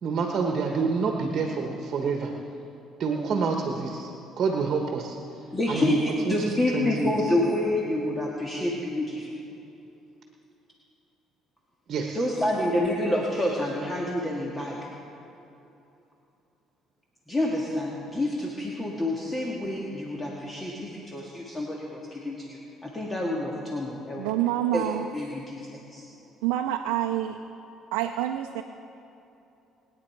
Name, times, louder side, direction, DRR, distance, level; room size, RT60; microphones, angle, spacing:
voice 1, 0.0-2.3 3.0-4.1 4.4-5.2 5.7-6.0 6.3-6.4 6.7-7.1 11.9-12.2, right 5 dB, 55° right, 2 dB, 1.2 m, -27 dB
voice 2, 5.5-9.3 12.1-14.8 17.3-24.2 24.7-24.9 25.1-26.0, left 1 dB, 20° left, -3 dB, 1.8 m, -28 dB
voice 3, 24.2-25.1 26.4-27.4 27.9-28.6, right 12 dB, 90° right, 4 dB, 0.6 m, -27 dB
21.0 x 9.4 x 4.6 m, 2.8 s
supercardioid pair, 80°, 0 cm